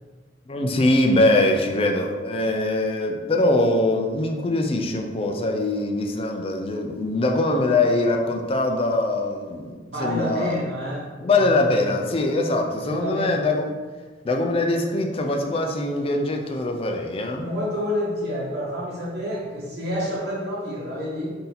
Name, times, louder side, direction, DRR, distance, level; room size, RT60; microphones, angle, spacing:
voice 1, 0.5-9.7 10.0-10.6 11.2-13.7 14.2-17.5, left 2 dB, 35° left, 3 dB, 0.4 m, -22 dB
voice 2, 9.9-11.9 12.8-13.4 17.4-21.3, equal, 65° right, -8 dB, 1.3 m, -29 dB
4.1 x 2.8 x 3.9 m, 1.4 s
head